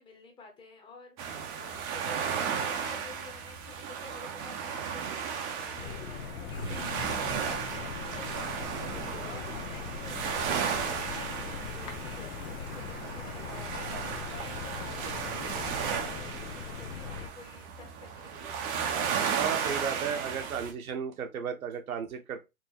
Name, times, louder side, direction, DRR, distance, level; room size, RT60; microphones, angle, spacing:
voice 1, 0.0-19.3, left 4 dB, 10° left, 0.9 m, -51 dB
sound 1, 1.2-20.7, right 7 dB, 20° right, 0.6 m, -35 dB
sound 2, 5.8-17.3, left 7 dB, 80° left, 0.6 m, -41 dB
sound 3, 6.5-15.9, left 2 dB, 30° left, 1.2 m, -45 dB
voice 2, 19.3-22.4, right 7 dB, 75° right, 1.2 m, -34 dB
4.5 x 2.7 x 2.9 m
hypercardioid pair, 135°, 42 cm